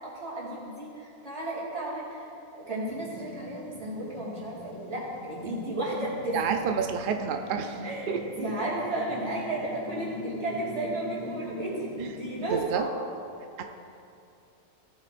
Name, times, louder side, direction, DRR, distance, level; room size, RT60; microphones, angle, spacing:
voice 1, 0.0-2.3 2.5-6.4 7.6-13.0, right 2 dB, 50° right, -5 dB, 3.0 m, -33 dB
sound 1, 2.8-12.5, left 3 dB, 35° left, 0.7 m, -42 dB
voice 2, 6.3-7.8 8.1-8.2 12.5-12.9 13.6-13.7, right 7 dB, 65° right, 5 dB, 0.5 m, -29 dB
16.5 x 8.7 x 2.5 m, 2.6 s
omnidirectional pair, 1.5 m